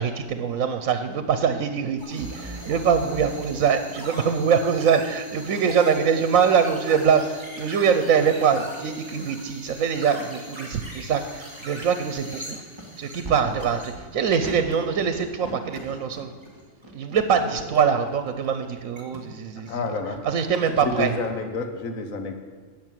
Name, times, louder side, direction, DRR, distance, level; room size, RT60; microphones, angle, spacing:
voice 1, 0.0-12.6 13.0-16.3 16.9-21.2, right 7 dB, 80° right, 9 dB, 1.2 m, -23 dB
sound 1, 2.0-19.2 19.5-19.9 20.2-20.6 21.1-21.3, right 1 dB, 20° right, 2.4 m, -40 dB
voice 2, 19.7-20.2 20.7-22.3, left 3 dB, 90° left, 6 dB, 1.6 m, -29 dB
10.5 x 7.4 x 9.2 m, 1.5 s
omnidirectional pair, 1.4 m